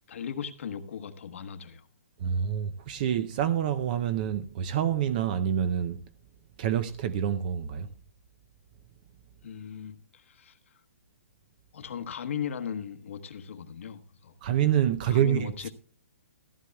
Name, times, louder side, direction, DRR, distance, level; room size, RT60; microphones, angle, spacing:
voice 1, 0.1-1.9 7.8-7.9 9.4-10.6 11.7-14.3 15.1-15.7, left 8 dB, 65° left, 1.2 m, -37 dB
voice 2, 2.2-6.0 6.6-7.9 14.4-15.7, right 9 dB, 35° right, 0.6 m, -27 dB
14.5 x 14.5 x 2.3 m
hypercardioid pair, 155°, 8 cm